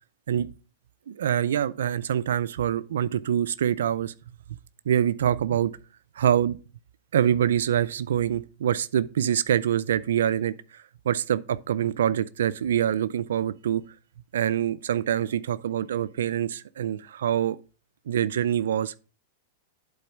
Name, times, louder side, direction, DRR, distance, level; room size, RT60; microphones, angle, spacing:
voice 1, 1.1-4.1 4.9-5.7 6.2-6.6 7.1-13.8 14.3-17.6 18.1-18.9, right 10 dB, 80° right, 0.4 m, -25 dB
8.4 x 3.9 x 5.8 m
hypercardioid pair, 125°, 0 cm